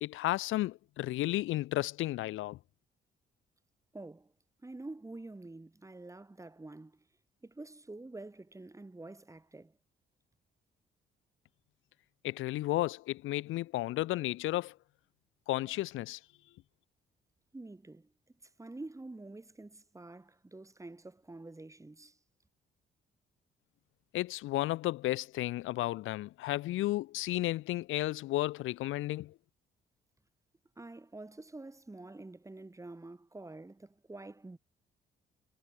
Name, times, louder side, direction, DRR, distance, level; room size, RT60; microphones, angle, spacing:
voice 1, 0.0-2.6 12.2-14.7 15.5-16.2 24.1-29.3, left 16 dB, 90° left, 1.0 m, -33 dB
voice 2, 3.9-4.3 4.6-7.0 7.4-9.8 17.5-18.1 18.4-22.2 30.8-34.6, right 2 dB, 15° right, 3.4 m, -47 dB
cardioid pair, 90°, 20 cm